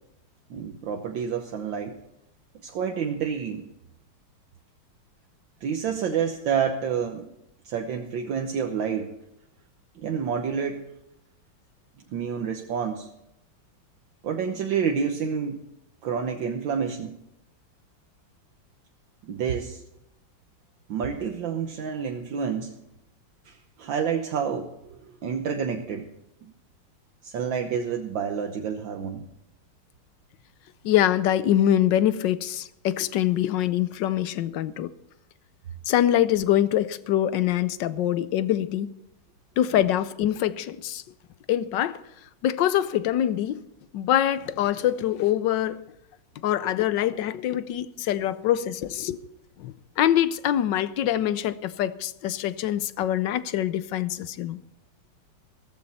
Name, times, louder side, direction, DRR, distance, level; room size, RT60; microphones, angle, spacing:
voice 1, 0.5-2.0 2.6-3.6 5.6-7.3 7.6-9.1 9.9-10.8 12.1-13.1 14.2-15.6 16.0-17.2 19.2-19.8 20.9-22.7 23.4-24.7 25.2-26.1 26.4-26.5 27.2-29.3, right 7 dB, 70° right, 1.7 m, -28 dB
voice 2, 30.8-34.9 35.9-38.9 39.6-41.0 41.5-42.0 42.4-43.6 43.9-45.8 46.4-49.2 49.6-54.6, left 11 dB, 70° left, 1.3 m, -24 dB
15.5 x 14.0 x 4.2 m
omnidirectional pair, 2.2 m